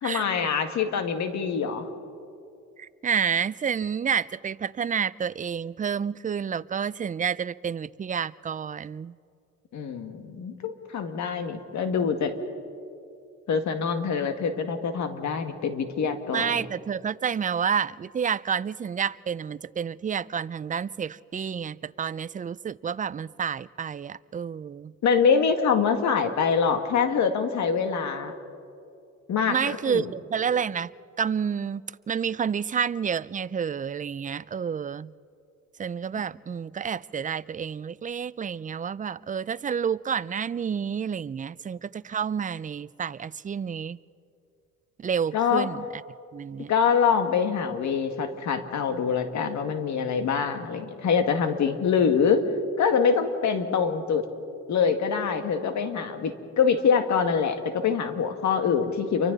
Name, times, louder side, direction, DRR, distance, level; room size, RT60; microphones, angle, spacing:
voice 1, 0.0-1.9 9.7-12.3 13.5-16.6 25.0-28.3 29.3-30.1 45.3-45.7 46.7-52.4 52.8-54.2 54.7-59.3, left 6 dB, 65° left, 7 dB, 1.9 m, -25 dB
voice 2, 2.8-9.2 16.3-24.9 29.5-30.9 31.2-35.1 35.8-44.0 45.0-46.0 46.3-46.7, right 7 dB, 25° right, 18 dB, 0.4 m, -29 dB
29.0 x 24.0 x 4.0 m, 2.5 s
cardioid pair, 90°, 30 cm